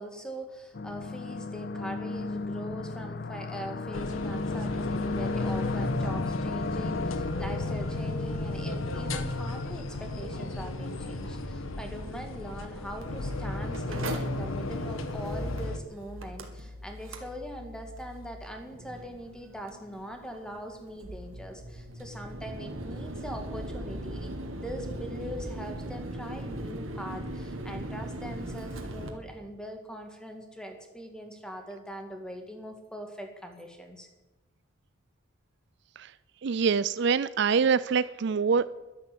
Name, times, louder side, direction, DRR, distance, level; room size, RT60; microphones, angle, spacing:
voice 1, 0.0-34.1, equal, 5° left, 4 dB, 2.0 m, -42 dB
sound 1, 0.7-10.5, left 3 dB, 50° left, 0.6 m, -35 dB
sound 2, 3.9-15.8, left 2 dB, 90° left, 1.4 m, -34 dB
Mechanical fan, 13.0-29.1, right 1 dB, 85° right, 2.0 m, -40 dB
voice 2, 36.4-38.7, right 5 dB, 60° right, 16 dB, 0.4 m, -25 dB
12.0 x 10.5 x 8.5 m, 1.1 s
head